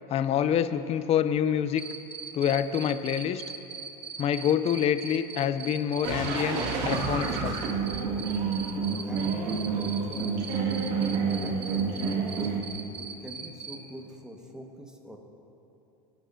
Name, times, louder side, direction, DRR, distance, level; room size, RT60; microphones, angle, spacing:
voice 1, 0.1-1.8 2.3-3.4 4.2-7.5, left 9 dB, 30° left, 12 dB, 0.5 m, -26 dB
Cricket, 1.8-13.7, right 6 dB, 30° right, 1.1 m, -39 dB
sound 1, 6.1-12.6, right 5 dB, 60° right, 2.0 m, -29 dB
voice 2, 9.0-10.3 11.2-12.5 12.9-15.2, equal, 5° right, 1 dB, 1.5 m, -43 dB
19.0 x 10.5 x 2.7 m, 2.9 s
supercardioid pair, 105°, 20 cm